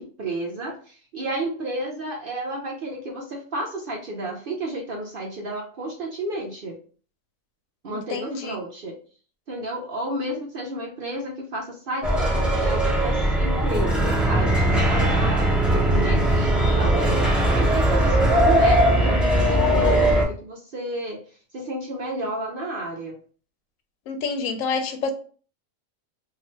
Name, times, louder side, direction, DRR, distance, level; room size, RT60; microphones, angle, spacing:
voice 1, 0.0-6.8 7.8-9.0 9.5-21.2 21.5-23.2, right 1 dB, 65° right, 0 dB, 0.6 m, -32 dB
voice 2, 7.9-8.6 24.1-25.1, left 4 dB, 90° left, 7 dB, 1.0 m, -28 dB
sound 1, 12.0-20.2, right 1 dB, ahead, 0.4 m, -20 dB
2.7 x 2.4 x 3.0 m, 0.41 s
omnidirectional pair, 1.4 m